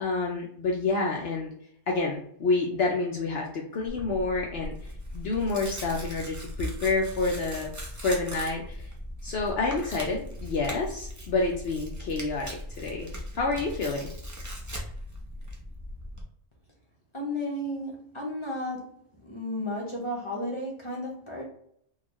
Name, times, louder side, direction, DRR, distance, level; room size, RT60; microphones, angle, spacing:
voice 1, 0.0-1.5 1.9-4.7 5.1-7.7 8.0-8.9 9.2-13.1 13.3-14.1, left 3 dB, 60° left, -1 dB, 0.7 m, -28 dB
Tearing, 3.9-16.2, equal, 25° right, 0.4 m, -39 dB
voice 2, 17.1-18.8 19.2-21.4, left 1 dB, 30° left, -1 dB, 0.7 m, -33 dB
3.7 x 2.4 x 3.0 m, 0.69 s
omnidirectional pair, 1.3 m